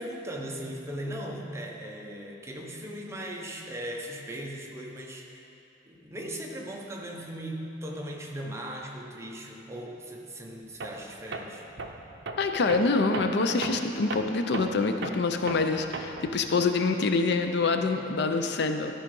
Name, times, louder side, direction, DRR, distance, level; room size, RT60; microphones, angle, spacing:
voice 1, 0.0-5.5 5.9-11.7, right 1 dB, 15° right, 0 dB, 0.8 m, -38 dB
Tools, 10.8-11.0 11.3-16.4, right 3 dB, 65° right, 0.6 m, -38 dB
voice 2, 12.4-18.9, left 3 dB, 65° left, 6 dB, 0.5 m, -26 dB
12.5 x 4.9 x 5.3 m, 2.7 s
head